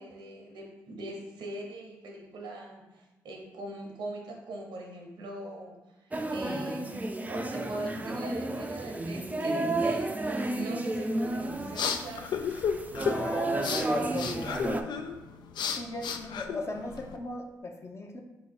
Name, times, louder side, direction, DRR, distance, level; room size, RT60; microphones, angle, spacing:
voice 1, 0.0-12.3, right 2 dB, 80° right, 0 dB, 0.8 m, -41 dB
sound 1, 6.1-14.8, right 2 dB, 20° right, 0.4 m, -32 dB
sound 2, 11.3-17.2, left 6 dB, 70° left, 0.3 m, -34 dB
voice 2, 13.1-14.7 15.8-18.2, left 2 dB, 35° left, 2 dB, 0.8 m, -38 dB
3.8 x 2.8 x 4.3 m, 1.1 s
supercardioid pair, 45°, 8 cm